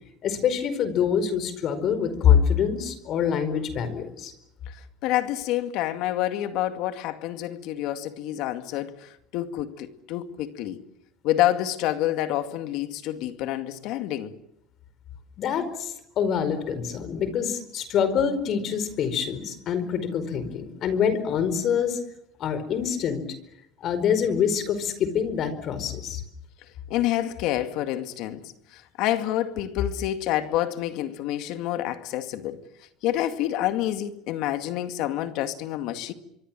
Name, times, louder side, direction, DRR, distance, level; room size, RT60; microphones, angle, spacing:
voice 1, 0.2-4.3 15.4-22.0 22.4-23.2 23.8-26.2, left 7 dB, 50° left, 4.7 m, -25 dB
voice 2, 5.0-10.8 11.2-14.3 26.9-32.6 33.0-36.1, left 13 dB, 65° left, 2.1 m, -28 dB
25.5 x 23.5 x 7.6 m
supercardioid pair, 100°, 0 cm